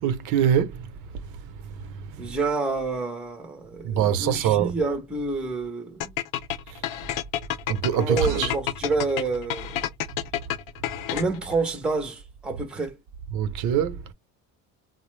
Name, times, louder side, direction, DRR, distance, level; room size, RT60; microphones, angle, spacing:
voice 1, 0.0-0.9 2.1-2.2 3.8-4.8 7.7-8.5 13.3-14.0, right 9 dB, 60° right, 0.6 m, -23 dB
voice 2, 2.2-6.1 8.0-9.9 11.1-12.9, right 3 dB, 5° right, 0.5 m, -28 dB
sound 1, 6.0-11.5, left 12 dB, 65° left, 0.5 m, -30 dB
4.2 x 2.0 x 3.1 m
cardioid pair, 165°, 35 cm